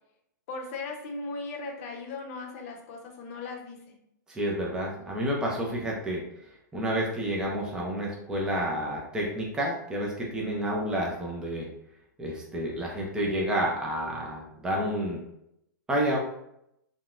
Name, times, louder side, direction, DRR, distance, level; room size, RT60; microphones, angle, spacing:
voice 1, 0.5-3.9, left 3 dB, 45° left, 2 dB, 0.7 m, -38 dB
voice 2, 4.3-6.2 6.7-11.7 12.2-15.2 15.9-16.2, equal, 5° right, -3 dB, 0.5 m, -29 dB
3.9 x 2.2 x 2.4 m, 0.78 s
hypercardioid pair, 140°, 11 cm